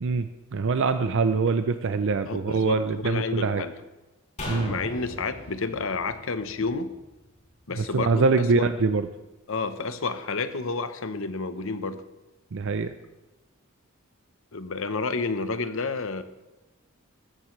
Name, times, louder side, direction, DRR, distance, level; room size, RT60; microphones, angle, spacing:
voice 1, 0.0-3.6 4.5-4.8 7.8-9.1 12.5-12.9, right 4 dB, 60° right, 10 dB, 0.5 m, -24 dB
voice 2, 2.3-3.7 4.6-6.9 7.7-8.2 8.5-8.7 9.5-12.0 14.5-16.2, left 4 dB, 65° left, 11 dB, 0.9 m, -30 dB
sound 1, 4.4-7.7 8.0-8.1, left 2 dB, 35° left, 4.5 m, -39 dB
15.0 x 14.0 x 3.2 m, 1.1 s
head